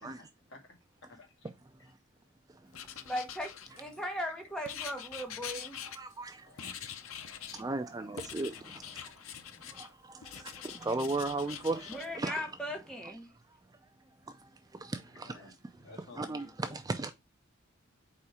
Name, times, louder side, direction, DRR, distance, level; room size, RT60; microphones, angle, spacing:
voice 1, 0.0-0.6 1.1-1.5 1.8-1.9 4.1-4.3 6.4-7.7 8.0-8.4 8.8-9.2 9.5-9.8 15.1-16.8, left 3 dB, 60° left, 2.0 m, -56 dB
Writing, 2.7-4.1 4.7-6.3 6.6-7.7 8.2-9.9 10.2-12.1, left 9 dB, 75° left, 0.7 m, -44 dB
voice 2, 3.0-5.8 11.9-13.3, equal, 5° left, 1.1 m, -38 dB
voice 3, 6.0-6.3 7.6-8.5 10.8-11.9 12.1-12.4 15.2-15.3 16.2-17.1, right 2 dB, 15° right, 0.4 m, -34 dB
4.6 x 4.3 x 4.8 m
head